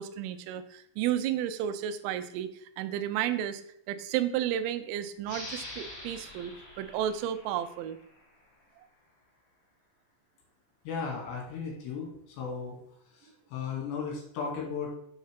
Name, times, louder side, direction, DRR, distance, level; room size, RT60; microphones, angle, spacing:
voice 1, 0.0-3.6 3.9-8.0, right 10 dB, 90° right, 11 dB, 3.3 m, -32 dB
sound 1, 5.2-8.5, left 1 dB, 40° left, 1.7 m, -45 dB
voice 2, 10.9-12.8 13.1-14.9, left 5 dB, 65° left, -2 dB, 3.7 m, -36 dB
7.3 x 6.5 x 3.3 m, 0.74 s
omnidirectional pair, 5.8 m